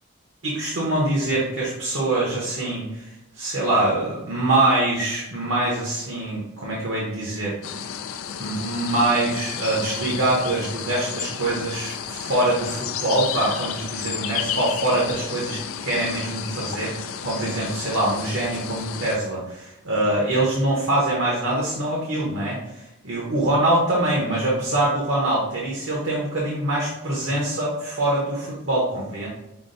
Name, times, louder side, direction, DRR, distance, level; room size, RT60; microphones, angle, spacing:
voice 1, 0.4-7.8 8.4-29.3, right 1 dB, 65° right, -4 dB, 1.1 m, -24 dB
sound 1, 7.6-19.2, left 8 dB, 80° left, 0.4 m, -32 dB
5.9 x 2.3 x 3.9 m, 0.91 s
head